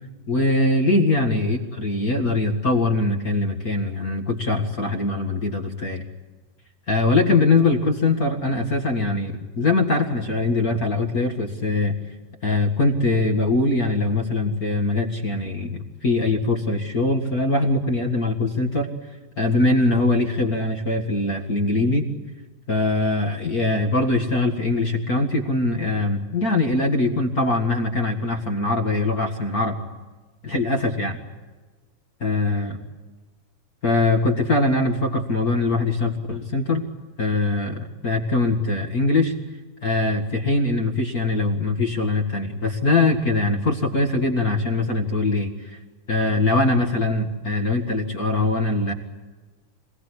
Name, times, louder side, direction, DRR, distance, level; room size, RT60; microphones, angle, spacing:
voice 1, 0.3-6.0 6.9-11.9 12.4-18.9 19.4-22.1 22.7-29.8 30.4-31.2 32.2-32.8 33.8-36.8 37.2-39.3 39.8-45.8 46.1-48.9, left 2 dB, 35° left, 4 dB, 1.7 m, -22 dB
26.5 x 18.0 x 9.9 m, 1.3 s
omnidirectional pair, 4.0 m